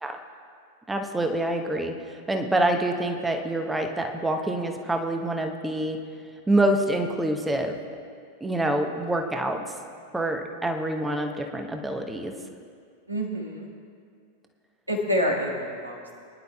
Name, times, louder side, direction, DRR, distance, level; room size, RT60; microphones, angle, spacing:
voice 1, 0.9-6.0 6.5-7.8 8.4-9.7 10.1-12.3, right 1 dB, 10° right, 4 dB, 1.0 m, -26 dB
voice 2, 13.1-13.7 14.9-16.1, equal, 85° right, -2 dB, 2.1 m, -27 dB
23.5 x 11.0 x 2.4 m, 2.2 s
figure-of-eight pair, 90°, 0 cm